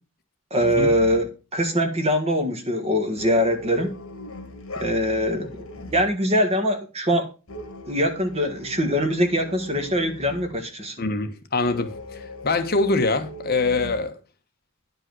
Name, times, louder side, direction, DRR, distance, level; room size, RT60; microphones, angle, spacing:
voice 1, 0.5-4.0 4.8-5.7 5.9-7.3 7.9-11.0, equal, 30° right, 1.6 m, -23 dB
sound 1, 0.6-1.4 3.2-6.1 7.5-10.6 11.6-14.0, left 1 dB, 65° left, 2.1 m, -39 dB
voice 2, 11.0-14.2, left 3 dB, 45° left, 1.1 m, -24 dB
10.0 x 5.3 x 6.1 m
head